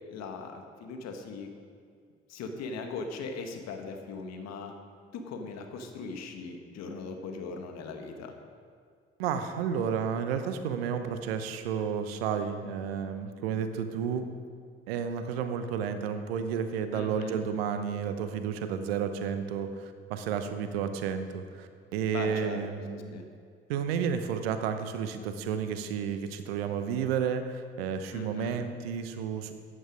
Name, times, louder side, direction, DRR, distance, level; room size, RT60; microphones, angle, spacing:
voice 1, 0.0-1.5 2.3-4.7 5.1-8.3 16.9-17.4 22.1-22.6 22.9-23.3 28.1-28.6, left 4 dB, 60° left, 4 dB, 1.8 m, -39 dB
voice 2, 9.2-14.3 14.9-23.2 23.7-29.5, right 7 dB, 75° right, 9 dB, 0.9 m, -31 dB
14.0 x 9.9 x 5.2 m, 2.1 s
figure-of-eight pair, 50°, 30 cm